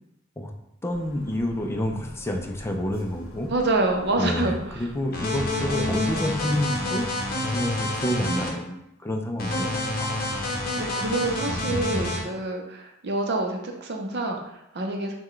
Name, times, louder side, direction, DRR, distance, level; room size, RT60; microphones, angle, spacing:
voice 1, 0.8-3.5 4.2-7.1 7.5-10.2 11.7-12.1, left 1 dB, 10° left, 3 dB, 0.4 m, -29 dB
sound 1, 0.9-6.5, left 1 dB, 80° left, 0.7 m, -46 dB
voice 2, 3.5-4.8 5.6-6.3 10.8-15.1, right 2 dB, 55° right, 2 dB, 0.6 m, -27 dB
sound 2, 5.1-8.5 9.4-12.2, left 2 dB, 45° left, 0.8 m, -28 dB
5.8 x 2.2 x 3.1 m, 0.85 s
head